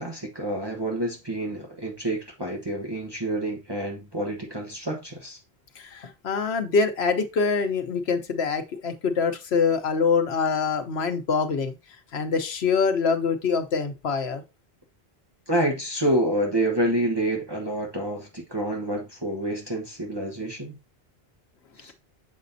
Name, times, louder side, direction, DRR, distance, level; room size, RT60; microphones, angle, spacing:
voice 1, 0.0-5.4 15.5-20.8 21.8-21.9, right 1 dB, 25° right, 1.2 m, -28 dB
voice 2, 5.8-11.7 12.1-14.4, left 5 dB, 85° left, 1.2 m, -24 dB
7.5 x 5.1 x 2.7 m
omnidirectional pair, 1.0 m